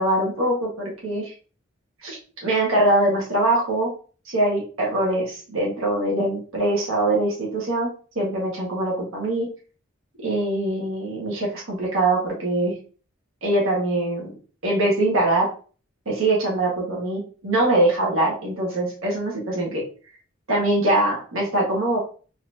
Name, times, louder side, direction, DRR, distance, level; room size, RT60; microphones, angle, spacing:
voice 1, 0.0-1.3 2.0-3.9 4.2-9.5 10.2-12.7 13.4-14.3 14.6-15.5 16.0-19.8 20.5-22.0, right 1 dB, 90° right, -3 dB, 1.6 m, -23 dB
4.0 x 2.9 x 2.7 m, 0.39 s
head